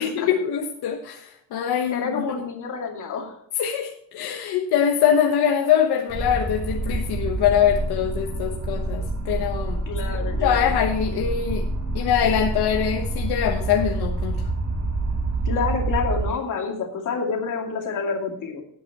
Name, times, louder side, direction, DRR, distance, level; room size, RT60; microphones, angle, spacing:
voice 1, 0.0-2.3 3.6-9.8 10.1-11.6 11.9-14.4, left 9 dB, 80° left, 3 dB, 1.2 m, -23 dB
voice 2, 1.9-3.4 9.9-10.8 15.4-18.6, left 5 dB, 50° left, 2 dB, 2.5 m, -28 dB
sound 1, 6.1-16.3, right 2 dB, 45° right, 3.6 m, -27 dB
16.5 x 8.6 x 3.0 m, 0.67 s
cardioid pair, 175°, 38 cm